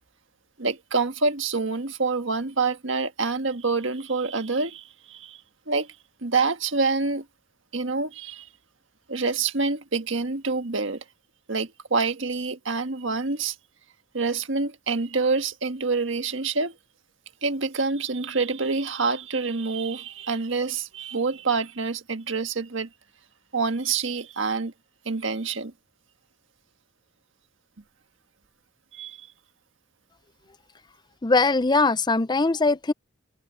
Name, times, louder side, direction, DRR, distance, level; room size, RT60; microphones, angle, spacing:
voice 1, 0.6-5.4 5.7-5.9 6.2-7.2 7.7-8.5 9.1-11.0 11.5-13.5 14.1-16.7 17.4-22.9 23.5-24.7 25.0-25.7 28.9-29.3, right 4 dB, 65° right, 1.6 m, -27 dB
voice 2, 31.2-32.9, left 3 dB, 20° left, 0.5 m, -21 dB
head